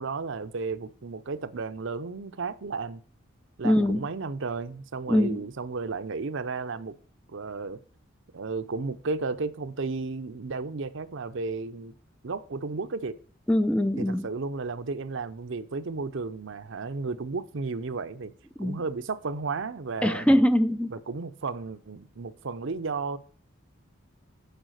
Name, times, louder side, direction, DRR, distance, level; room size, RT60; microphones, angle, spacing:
voice 1, 0.0-3.0 3.6-7.0 7.3-7.8 8.3-11.9 12.2-13.2 14.0-18.3 18.6-20.3 20.9-23.2, right 4 dB, 60° right, 0.7 m, -33 dB
voice 2, 3.6-4.1 5.1-5.4 13.5-14.3 18.6-18.8 20.0-20.9, left 1 dB, 5° left, 0.4 m, -23 dB
9.0 x 4.9 x 6.4 m
head